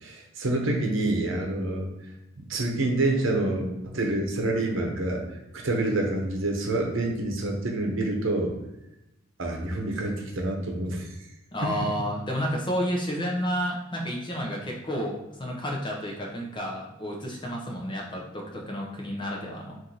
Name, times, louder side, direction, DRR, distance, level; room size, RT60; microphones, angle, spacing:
voice 1, 0.0-1.9 2.5-5.2 5.5-8.5 9.4-11.1, right 2 dB, 65° right, 1 dB, 0.9 m, -27 dB
voice 2, 11.5-19.7, equal, 25° left, -1 dB, 0.7 m, -31 dB
4.5 x 2.6 x 3.9 m, 0.92 s
head